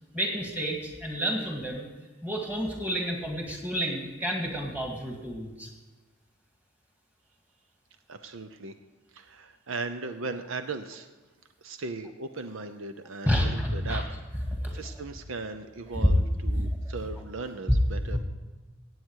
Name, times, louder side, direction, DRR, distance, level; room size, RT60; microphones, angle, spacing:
voice 1, 0.1-1.9 2.2-5.7 13.3-14.0 14.6-14.8 15.9-16.1 16.5-16.7 18.0-18.2, equal, 5° right, 0 dB, 2.0 m, -29 dB
voice 2, 8.1-8.7 9.1-11.1 11.6-14.0 14.7-18.2, right 3 dB, 70° right, 9 dB, 0.7 m, -37 dB
17.0 x 8.1 x 4.7 m, 1.3 s
head